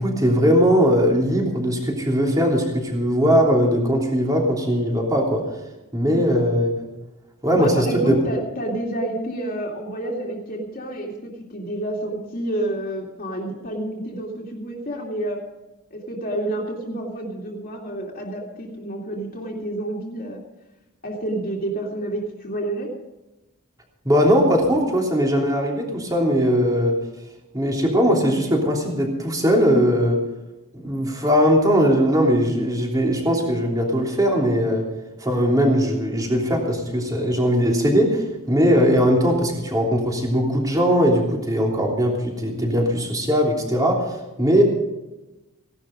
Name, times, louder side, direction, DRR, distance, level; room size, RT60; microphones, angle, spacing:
voice 1, 0.0-5.4 5.9-6.9 7.4-8.1 24.0-27.0 27.5-30.2 30.7-34.9 35.2-44.6, equal, 15° right, 0 dB, 3.2 m, -20 dB
voice 2, 7.5-15.4 15.9-20.4 21.0-22.9, right 1 dB, 45° left, -2 dB, 2.5 m, -29 dB
17.5 x 12.0 x 5.2 m, 1.0 s
head